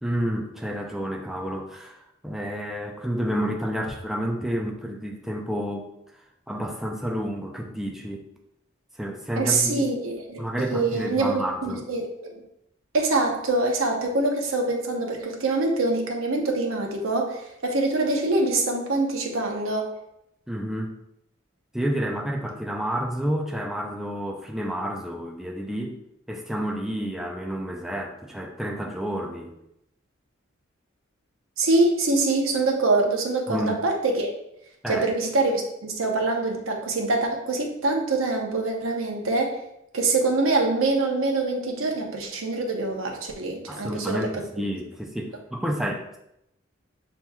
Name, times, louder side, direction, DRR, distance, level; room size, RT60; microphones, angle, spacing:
voice 1, 0.0-5.9 6.5-8.3 9.0-9.8 10.4-11.8 20.5-20.9 21.7-26.0 26.3-29.5 33.5-33.8 34.8-35.1 43.7-46.2, equal, ahead, 1 dB, 0.4 m, -30 dB
voice 2, 9.4-12.4 12.9-19.9 31.6-34.3 34.9-39.6 39.9-44.2, right 2 dB, 85° right, 2 dB, 0.8 m, -24 dB
6.9 x 3.0 x 2.3 m, 0.81 s
head